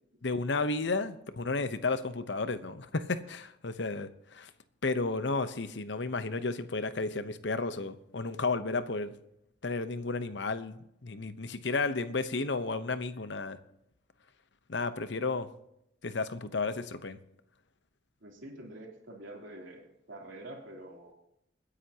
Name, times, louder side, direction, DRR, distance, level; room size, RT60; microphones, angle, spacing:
voice 1, 0.2-4.5 4.8-9.1 9.6-13.6 14.7-15.5 16.0-17.2, left 3 dB, 70° left, 11 dB, 0.9 m, -32 dB
voice 2, 18.2-21.1, right 1 dB, 85° right, 0 dB, 3.3 m, -46 dB
26.0 x 10.0 x 2.9 m, 0.79 s
head